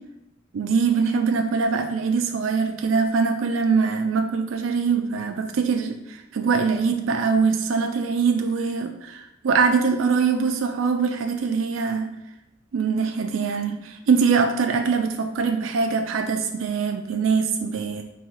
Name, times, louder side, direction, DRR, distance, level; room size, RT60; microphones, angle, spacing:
voice 1, 0.5-12.1 12.7-18.0, right 5 dB, 85° right, 5 dB, 0.4 m, -23 dB
3.7 x 3.0 x 4.7 m, 0.91 s
head